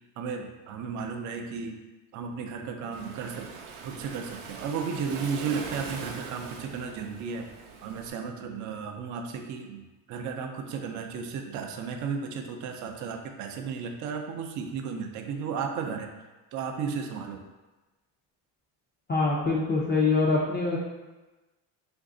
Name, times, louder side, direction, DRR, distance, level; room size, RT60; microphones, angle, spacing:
voice 1, 0.2-1.8 2.1-3.5 3.8-7.5 7.8-16.1 16.5-17.4, right 6 dB, 45° right, 4 dB, 0.4 m, -34 dB
Waves surf, 2.9-8.1, right 5 dB, 85° right, 0.6 m, -41 dB
voice 2, 19.1-20.8, left 3 dB, 25° left, -5 dB, 0.4 m, -24 dB
3.1 x 2.6 x 3.7 m, 1.1 s
cardioid pair, 120°, 47 cm